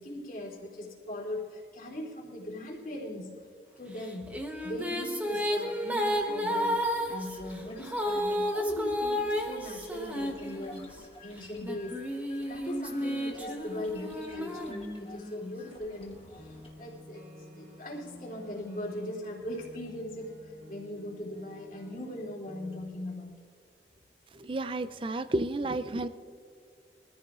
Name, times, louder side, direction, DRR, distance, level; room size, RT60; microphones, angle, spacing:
voice 1, 0.0-3.3 3.8-6.8 7.1-17.2 17.5-23.4, left 1 dB, 50° left, -4 dB, 3.1 m, -40 dB
sound 1, 4.0-11.0 11.6-15.4, equal, 10° right, 0.9 m, -32 dB
sound 2, 6.0-16.7, left 1 dB, 30° left, 1.3 m, -51 dB
sound 3, 15.6-22.9, left 1 dB, 55° right, 2.8 m, -51 dB
voice 2, 24.3-26.1, right 2 dB, 30° right, 13 dB, 0.4 m, -31 dB
23.5 x 14.0 x 2.5 m, 2.2 s
head